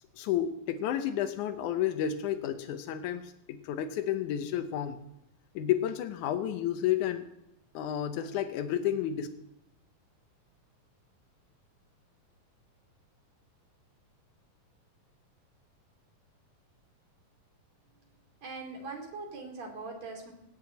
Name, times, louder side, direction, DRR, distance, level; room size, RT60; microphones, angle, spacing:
voice 1, 0.1-5.0 5.6-7.3 7.7-9.3, left 10 dB, 70° left, 7 dB, 2.0 m, -31 dB
voice 2, 18.4-20.3, right 3 dB, 50° right, 3 dB, 3.9 m, -41 dB
18.5 x 7.9 x 8.4 m, 0.84 s
omnidirectional pair, 4.1 m